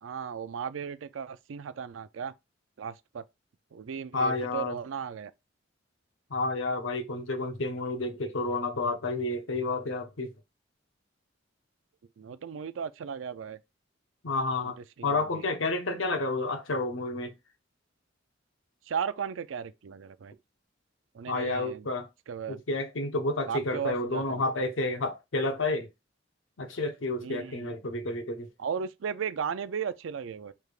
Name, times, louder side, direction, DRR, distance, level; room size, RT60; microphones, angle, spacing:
voice 1, 0.0-2.3 2.8-3.2 3.7-5.3 12.2-13.6 15.0-15.4 18.9-20.3 21.1-21.9 22.3-22.6 23.5-24.4 27.2-27.8 28.6-30.5, right 7 dB, 80° right, 0.4 m, -36 dB
voice 2, 4.1-4.8 6.3-10.3 14.2-14.8 15.0-17.3 21.3-22.1 22.5-25.9 26.6-28.5, left 2 dB, 80° left, 0.8 m, -30 dB
4.8 x 3.3 x 2.5 m
head